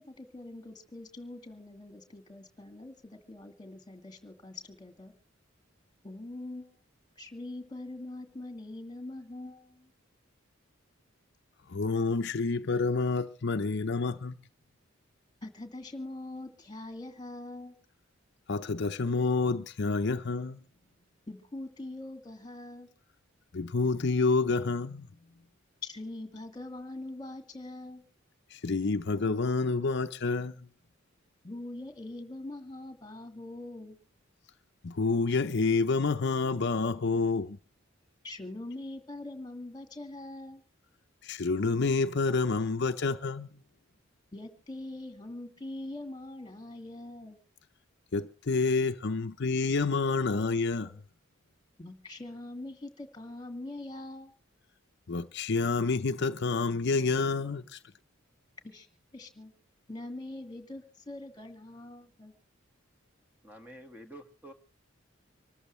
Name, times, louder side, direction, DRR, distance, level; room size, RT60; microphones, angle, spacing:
voice 1, 0.0-5.1 6.0-6.8 7.2-9.9 15.4-17.8 21.3-22.9 25.8-28.0 31.4-34.0 38.2-40.6 44.3-47.4 51.8-54.3 58.6-58.9 59.1-59.5 59.9-62.3, left 2 dB, 20° left, 2.2 m, -43 dB
voice 2, 11.7-14.3 18.5-20.6 23.5-25.1 28.5-30.7 34.8-37.6 41.2-43.5 48.1-50.9 55.1-57.8, left 3 dB, 55° left, 0.7 m, -28 dB
voice 3, 63.4-64.5, right 1 dB, 10° right, 1.6 m, -48 dB
25.5 x 14.0 x 3.2 m
head